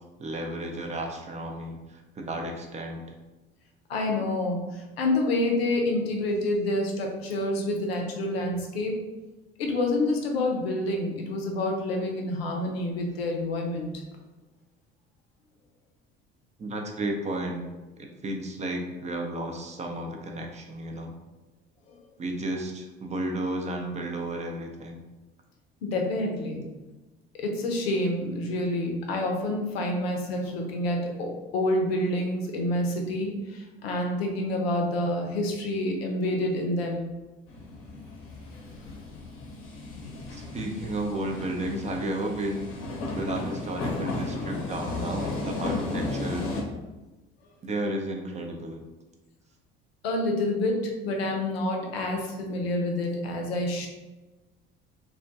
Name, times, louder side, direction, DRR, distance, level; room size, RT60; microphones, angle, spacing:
voice 1, 0.2-3.0 16.6-17.6 18.0-21.1 22.2-25.0 40.3-42.7 43.2-46.5 47.6-48.8, right 1 dB, 25° right, 2 dB, 0.5 m, -33 dB
voice 2, 3.9-9.0 9.6-13.9 25.8-26.7 27.4-37.1 39.9-40.1 50.0-53.9, left 1 dB, 80° left, 2 dB, 0.5 m, -28 dB
sound 1, 37.5-46.6, left 2 dB, 45° left, 0.7 m, -34 dB
2.2 x 2.1 x 2.7 m, 1.1 s
figure-of-eight pair, 55°, 30 cm